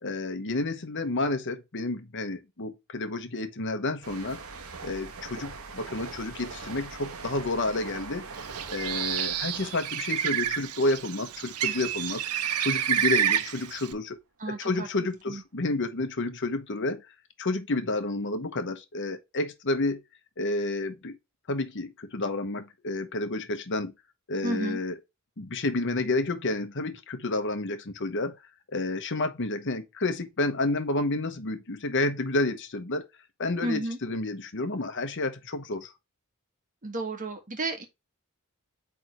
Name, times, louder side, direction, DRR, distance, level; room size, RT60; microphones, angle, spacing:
voice 1, 0.0-4.4 4.8-8.3 8.7-12.2 12.6-14.2 14.5-17.1 17.4-20.0 20.4-21.2 21.5-23.9 24.3-24.9 25.4-28.4 28.7-33.1 33.4-35.9, left 2 dB, 55° left, 1.1 m, -30 dB
sound 1, 4.0-11.5 11.8-12.1, right 4 dB, 70° right, 1.2 m, -42 dB
Bird, 8.4-13.9, right 10 dB, 85° right, 0.7 m, -29 dB
voice 2, 14.4-14.9 15.3-15.4 24.4-24.8 33.6-34.0 36.8-37.9, right 2 dB, 35° right, 1.6 m, -32 dB
8.8 x 3.5 x 3.1 m
head